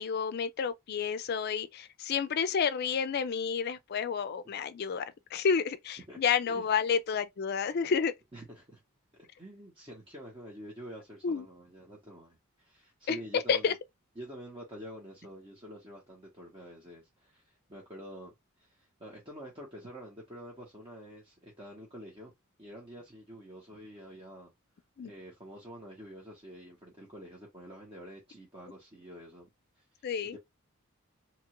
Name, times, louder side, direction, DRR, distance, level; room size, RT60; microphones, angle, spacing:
voice 1, 0.0-5.1 5.3-8.1 11.2-11.5 13.1-13.7 25.0-25.1 30.0-30.4, left 6 dB, 50° left, 0.4 m, -30 dB
voice 2, 8.3-8.8 9.4-13.8 14.2-22.3 22.6-24.5 25.0-29.5 29.8-30.0 30.3-30.4, equal, 25° right, 0.9 m, -47 dB
2.9 x 2.4 x 2.9 m
head